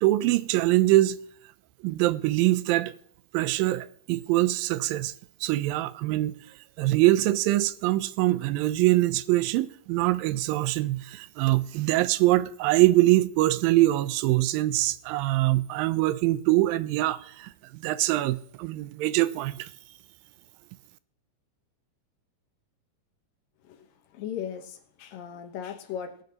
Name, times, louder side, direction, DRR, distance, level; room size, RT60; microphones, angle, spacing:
voice 1, 0.0-1.2 1.8-2.9 3.3-5.1 5.4-6.3 6.8-19.7, right 17 dB, 85° right, 2.3 m, -23 dB
voice 2, 24.1-26.2, left 8 dB, 75° left, 2.8 m, -37 dB
20.5 x 8.0 x 2.9 m
omnidirectional pair, 4.1 m